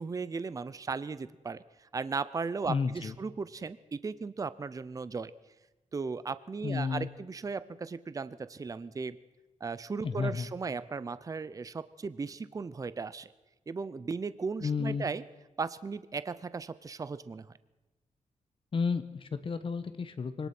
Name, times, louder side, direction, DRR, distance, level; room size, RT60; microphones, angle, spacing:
voice 1, 0.0-5.3 5.9-9.2 9.6-13.3 13.7-15.2 15.6-17.5, right 4 dB, 30° right, 16 dB, 0.6 m, -36 dB
voice 2, 2.7-3.1 6.6-7.1 10.0-10.5 14.6-15.0 18.7-20.5, left 5 dB, 45° left, 10 dB, 1.1 m, -32 dB
24.0 x 18.5 x 6.0 m, 1.1 s
wide cardioid pair, 150°, 12 cm